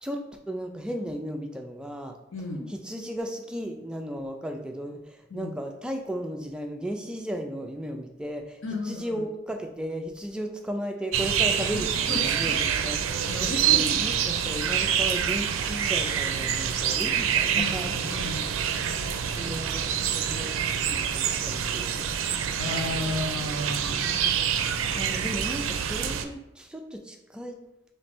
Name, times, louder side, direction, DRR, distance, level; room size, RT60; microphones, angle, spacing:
voice 1, 0.0-2.2 2.7-8.6 8.8-18.0 19.4-20.6 20.8-22.1 24.0-24.4 25.0-27.6, equal, 5° right, 3 dB, 0.3 m, -35 dB
voice 2, 2.3-2.7 5.3-5.5 8.6-9.2 11.7-12.6 13.2-14.0 17.5-18.4 22.6-24.2, left 2 dB, 90° left, 1 dB, 0.8 m, -33 dB
sound 1, 11.1-26.3, right 8 dB, 90° right, 0.4 m, -26 dB
3.2 x 3.2 x 4.3 m, 0.94 s
head